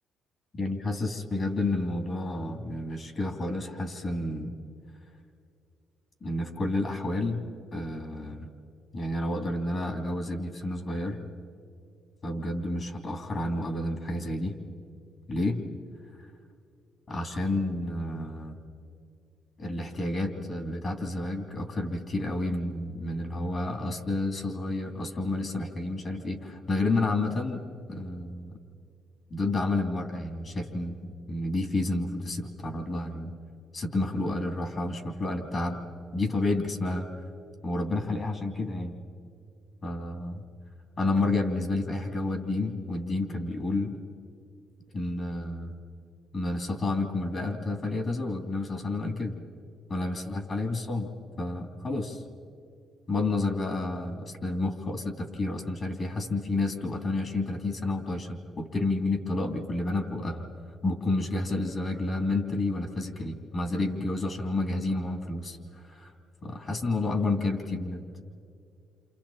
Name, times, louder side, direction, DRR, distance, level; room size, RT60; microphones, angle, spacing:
voice 1, 0.5-4.5 6.2-7.4 7.7-8.5 8.9-11.2 12.2-14.6 15.3-15.6 17.1-18.6 19.6-27.6 27.9-28.5 29.3-33.3 33.7-35.8 36.1-37.1 37.6-39.0 39.8-40.4 41.0-43.9 44.9-45.7 46.3-49.4 49.9-51.1 51.4-52.2 53.1-60.4 60.8-66.1 66.4-68.0, left 2 dB, 45° left, 4 dB, 3.2 m, -30 dB
29.0 x 27.5 x 4.4 m, 2.4 s
cardioid pair, 90°, 0 cm